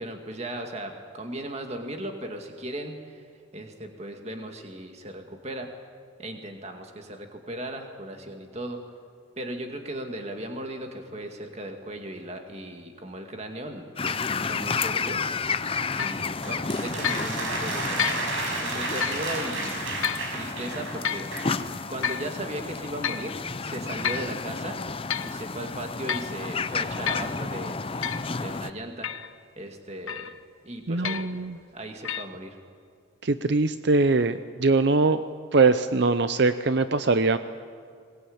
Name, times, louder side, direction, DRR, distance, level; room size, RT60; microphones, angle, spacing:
voice 1, 0.0-3.3 3.5-5.7 6.2-8.8 9.4-15.2 15.9-19.9 20.3-21.3 21.9-24.8 25.2-27.8 28.4-29.1 29.6-30.4 30.6-31.3 31.7-32.6, right 1 dB, 30° right, 4 dB, 2.0 m, -37 dB
sound 1, 14.0-28.7, left 4 dB, 25° left, 0.6 m, -32 dB
sound 2, 16.0-16.2 17.0-17.3 18.0-18.3 19.0-19.3 20.0-20.3 21.0-21.3 22.0-22.3 23.0-23.3 24.0-24.3 24.9-25.4 26.1-26.3 27.1-27.3 28.0-28.3 29.0-29.3 30.1-30.4 31.0-31.4 32.0-32.3, left 8 dB, 85° left, 0.9 m, -30 dB
sound 3, 16.4-21.6, right 2 dB, 75° right, 5.4 m, -32 dB
voice 2, 30.9-31.6 33.2-35.2 35.5-37.4, right 3 dB, 55° right, 11 dB, 0.6 m, -22 dB
21.5 x 20.5 x 8.7 m, 2.2 s
head